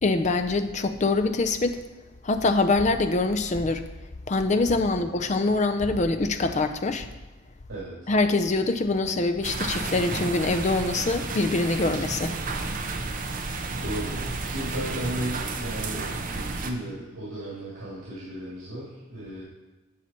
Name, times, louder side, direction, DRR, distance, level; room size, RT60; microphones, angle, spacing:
voice 1, 0.0-1.8 2.2-3.8 4.3-7.1 8.1-12.4, left 3 dB, 35° left, 9 dB, 0.5 m, -24 dB
sound 1, 9.4-16.7, right 3 dB, 40° right, 0.7 m, -32 dB
voice 2, 13.8-19.4, right 1 dB, 80° right, -8 dB, 2.5 m, -35 dB
10.0 x 5.7 x 4.4 m, 1.2 s
head